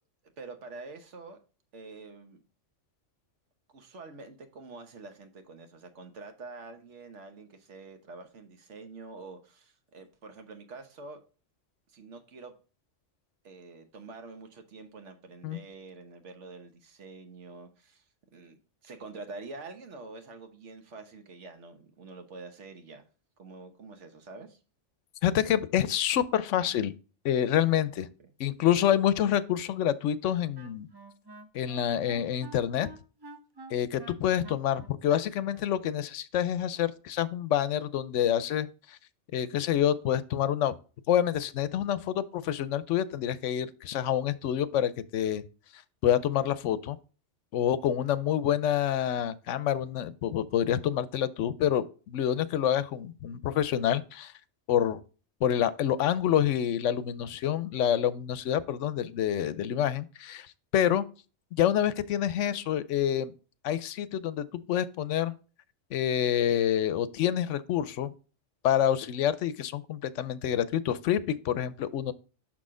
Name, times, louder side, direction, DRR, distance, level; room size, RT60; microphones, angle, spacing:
voice 1, 0.4-1.4 1.7-2.4 3.7-11.2 11.9-12.5 13.4-18.0 18.3-18.6 18.8-23.0 23.4-24.6 28.2-28.3, right 3 dB, 70° right, 1.4 m, -46 dB
voice 2, 25.2-26.9 27.2-28.1 28.4-30.9 31.5-32.9 33.7-39.0 39.3-40.7 41.1-45.4 46.0-47.0 47.5-54.3 54.7-55.0 55.4-60.5 60.7-61.0 61.5-63.3 63.6-65.3 65.9-68.1 68.6-72.1, left 10 dB, 80° left, 0.9 m, -27 dB
Wind instrument woodwind instrument, 30.2-35.8, right 2 dB, 25° right, 0.6 m, -49 dB
6.2 x 6.0 x 3.7 m
omnidirectional pair, 1.3 m